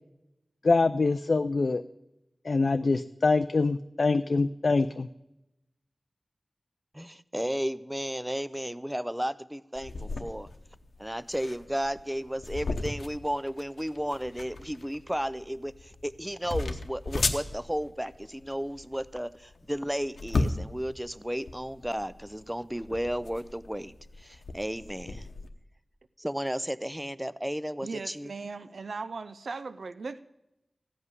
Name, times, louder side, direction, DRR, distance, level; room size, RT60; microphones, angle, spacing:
voice 1, 0.6-1.8 2.4-5.1, left 3 dB, 65° left, 10 dB, 0.4 m, -24 dB
voice 2, 6.9-10.5 11.0-25.3 26.2-28.3, equal, 5° right, 15 dB, 0.4 m, -33 dB
sound 1, 9.7-25.5, left 3 dB, 85° left, 0.9 m, -36 dB
voice 3, 27.8-30.2, right 4 dB, 85° right, 14 dB, 0.4 m, -38 dB
15.0 x 5.6 x 9.5 m, 0.92 s
wide cardioid pair, 80°, 0 cm